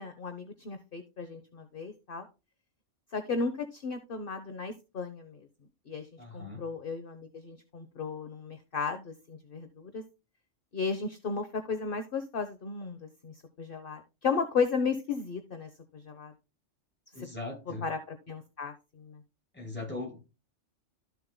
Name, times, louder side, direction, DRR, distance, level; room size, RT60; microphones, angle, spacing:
voice 1, 0.0-2.3 3.1-5.5 5.9-6.1 6.3-10.0 10.7-16.3 17.1-17.3 17.8-19.2, left 5 dB, 50° left, 1.1 m, -35 dB
voice 2, 6.2-6.6 17.1-17.8 19.5-20.2, left 2 dB, 10° left, 3.7 m, -39 dB
13.0 x 7.0 x 2.2 m
omnidirectional pair, 1.2 m